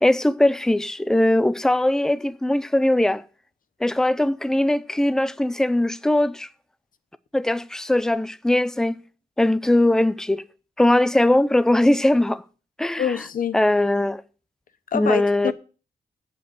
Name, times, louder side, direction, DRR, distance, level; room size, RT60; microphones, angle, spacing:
voice 1, 0.0-3.2 3.8-6.5 7.3-9.0 9.4-10.4 10.8-12.4 12.8-13.1 13.5-14.2 14.9-15.5, left 1 dB, 5° left, 0.4 m, -20 dB
voice 2, 13.0-13.6 14.9-15.5, left 8 dB, 60° left, 0.9 m, -25 dB
8.0 x 7.8 x 7.8 m
wide cardioid pair, 170°, 16 cm